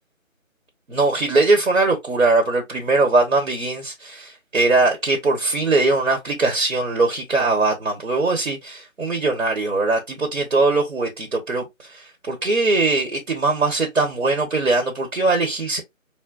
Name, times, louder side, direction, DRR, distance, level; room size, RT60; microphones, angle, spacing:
voice 1, 0.9-15.8, right 3 dB, 70° right, 1.1 m, -21 dB
4.4 x 2.1 x 2.4 m
figure-of-eight pair, 160°, 40 cm